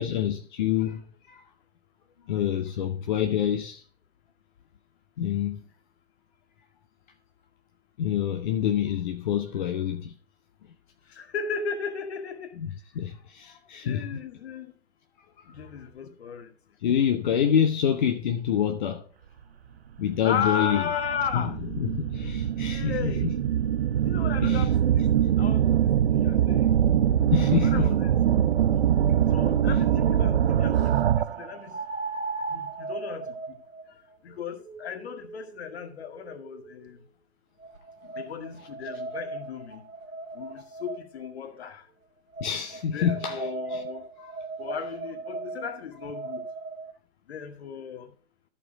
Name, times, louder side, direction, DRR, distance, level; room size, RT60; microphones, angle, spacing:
voice 1, 0.0-1.4 2.3-3.8 5.2-5.6 8.0-10.1 12.6-14.1 16.8-19.0 20.0-20.8 21.3-21.4 21.8-23.3 24.4-24.7 27.3-27.9 42.4-43.8 44.2-44.3, left 9 dB, 40° left, 0.8 m, -27 dB
voice 2, 11.1-12.5 13.8-14.7 15.5-16.5 20.2-21.6 22.6-23.3 24.0-25.1 25.4-25.7 26.1-26.7 27.5-28.1 28.4-28.6 29.3-31.8 32.5-33.3 34.2-37.0 38.2-39.8 40.3-41.8 42.9-44.0 44.6-46.4 47.3-48.1, left 7 dB, 55° left, 1.9 m, -35 dB
sound 1, 20.1-20.2 20.8-31.5, right 10 dB, 50° right, 0.7 m, -23 dB
sound 2, 29.1-29.2 31.7-36.9 37.6-41.3 42.3-46.9, right 3 dB, 90° right, 1.2 m, -38 dB
13.0 x 4.6 x 4.9 m
figure-of-eight pair, 130°, 38 cm